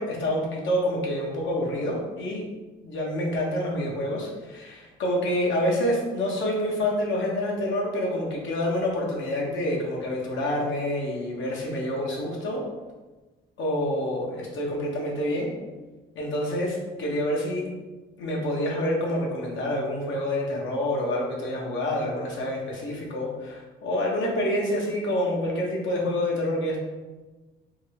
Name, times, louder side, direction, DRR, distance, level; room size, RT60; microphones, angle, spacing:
voice 1, 0.0-2.4 2.8-12.6 13.6-15.5 16.1-17.6 18.2-26.8, left 1 dB, 70° left, -2 dB, 1.0 m, -27 dB
3.6 x 2.3 x 3.2 m, 1.2 s
cardioid pair, 90°, 20 cm